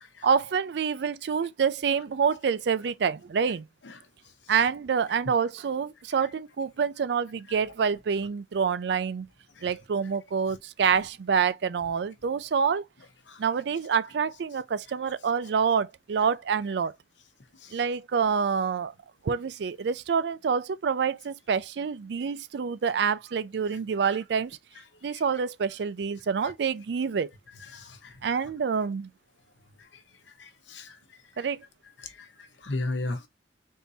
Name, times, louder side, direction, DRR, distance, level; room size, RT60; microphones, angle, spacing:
voice 1, 0.2-3.7 4.5-9.3 9.6-12.8 13.4-16.9 17.7-18.9 19.2-24.6 25.0-27.3 28.2-29.1 31.4-31.6, right 6 dB, 65° right, 0.4 m, -27 dB
voice 2, 27.7-28.1 30.4-31.0 32.0-32.3 32.6-33.3, left 2 dB, 85° left, 0.9 m, -35 dB
4.1 x 3.6 x 2.7 m
head